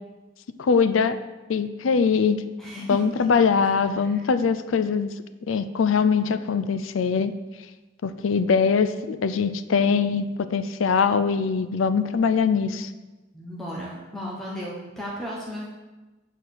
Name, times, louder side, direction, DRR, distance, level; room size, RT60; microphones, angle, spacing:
voice 1, 0.6-1.2 1.5-2.4 2.9-5.1 5.5-7.3 8.0-12.9, left 5 dB, 90° left, 11 dB, 0.4 m, -22 dB
voice 2, 2.6-3.0 3.6-3.7 4.0-4.2 13.3-15.7, equal, ahead, -5 dB, 1.1 m, -35 dB
9.0 x 4.3 x 6.5 m, 1.2 s
head